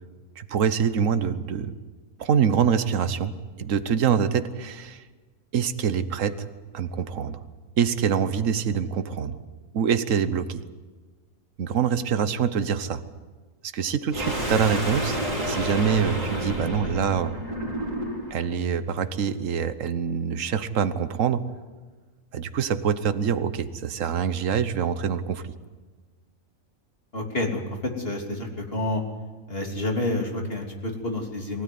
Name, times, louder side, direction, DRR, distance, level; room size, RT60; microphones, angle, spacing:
voice 1, 0.4-1.7 2.2-3.3 3.6-5.0 5.5-6.5 6.7-7.4 7.8-9.4 9.7-10.6 11.6-13.0 13.6-17.3 18.3-21.4 22.3-25.4, right 7 dB, 65° right, 12 dB, 1.4 m, -25 dB
sound 1, 14.1-18.4, equal, 30° right, 4.2 m, -29 dB
voice 2, 27.1-29.0 29.5-31.6, left 2 dB, 45° left, 1 dB, 3.6 m, -29 dB
23.5 x 16.5 x 9.5 m, 1.4 s
omnidirectional pair, 1.4 m